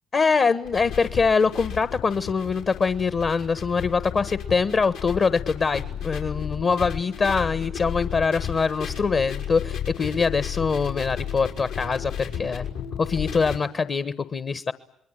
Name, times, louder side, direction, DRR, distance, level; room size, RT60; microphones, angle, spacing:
voice 1, 0.1-12.6 13.0-14.7, left 5 dB, 45° left, 13 dB, 1.3 m, -23 dB
sound 1, 0.6-13.6, left 8 dB, 85° left, 5.4 m, -33 dB
27.0 x 21.0 x 9.1 m, 0.73 s
supercardioid pair, 65°, 0 cm